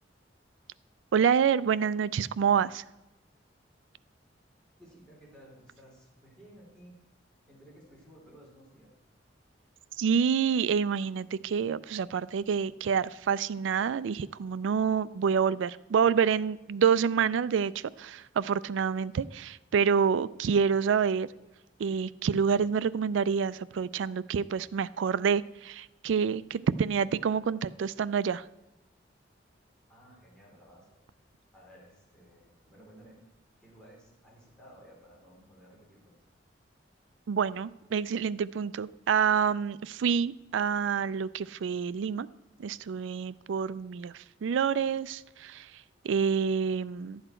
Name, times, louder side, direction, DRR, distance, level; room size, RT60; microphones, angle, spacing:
voice 1, 1.1-2.8 10.0-21.3 21.8-28.5 37.3-42.3 42.6-47.2, right 6 dB, 80° right, 17 dB, 0.4 m, -27 dB
voice 2, 4.8-7.0 7.5-8.9 29.9-31.2 31.5-33.2 33.6-36.1, equal, 5° left, -5 dB, 3.2 m, -55 dB
12.0 x 8.1 x 4.4 m, 1.0 s
head